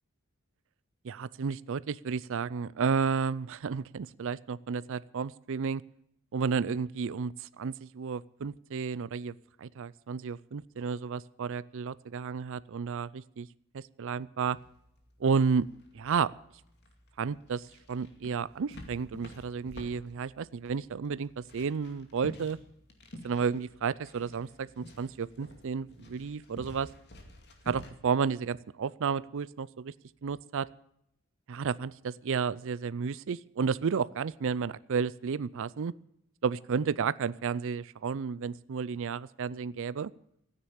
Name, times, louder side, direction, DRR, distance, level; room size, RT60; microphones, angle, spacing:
voice 1, 1.0-5.8 6.3-9.3 9.6-13.5 13.7-14.6 15.2-15.7 15.9-16.3 17.2-22.6 23.2-26.9 27.7-29.9 30.2-30.7 31.5-35.9 36.4-40.1, right 6 dB, 65° right, 19 dB, 0.5 m, -32 dB
sound 1, 14.4-27.9, left 1 dB, 55° left, 2.4 m, -50 dB
14.0 x 9.8 x 8.7 m, 0.76 s
head